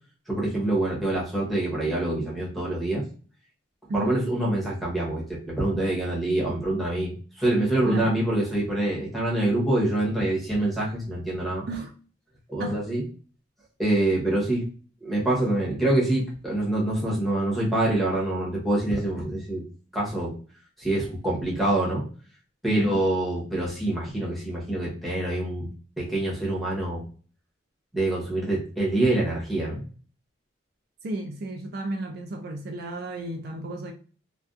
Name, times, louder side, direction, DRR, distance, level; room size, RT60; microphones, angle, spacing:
voice 1, 0.3-3.0 3.9-11.6 12.5-13.0 13.8-14.6 15.0-19.6 19.9-20.3 20.8-22.0 22.6-25.7 26.0-27.0 27.9-29.8, right 1 dB, ahead, 0.9 m, -25 dB
voice 2, 3.9-4.2 7.8-8.2 11.7-11.9 12.6-12.8 22.7-23.0 31.0-33.9, right 1 dB, 50° right, 0.3 m, -32 dB
2.5 x 2.2 x 2.3 m
head